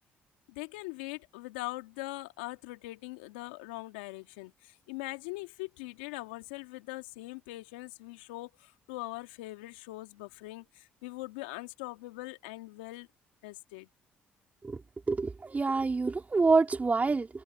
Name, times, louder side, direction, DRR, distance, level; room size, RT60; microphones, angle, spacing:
voice 1, 0.5-13.1 13.4-13.9, left 21 dB, 90° left, 2.2 m, -42 dB
voice 2, 15.1-17.4, right 4 dB, 30° right, 3.6 m, -27 dB
hypercardioid pair, 55°, 5 cm